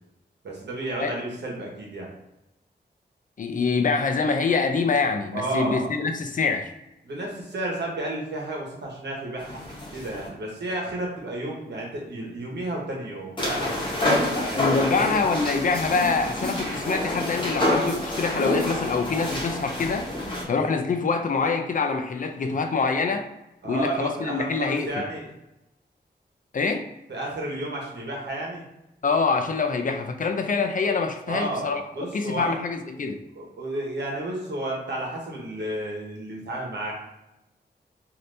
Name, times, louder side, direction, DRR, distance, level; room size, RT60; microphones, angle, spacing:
voice 1, 0.4-2.1 5.3-5.9 7.0-9.6 9.9-13.8 14.3-15.2 23.6-25.3 27.1-28.6 31.2-32.5 33.3-36.9, right 1 dB, 75° right, -2 dB, 1.0 m, -32 dB
voice 2, 3.4-6.7 14.6-20.1 20.5-23.3 23.6-24.9 26.5-26.9 29.0-31.8 32.1-33.2, left 4 dB, 50° left, 5 dB, 0.4 m, -25 dB
sound 1, 9.4-10.3 13.4-20.4, left 1 dB, 25° left, 1.1 m, -28 dB
3.2 x 2.6 x 2.6 m, 0.90 s
wide cardioid pair, 80°, 18 cm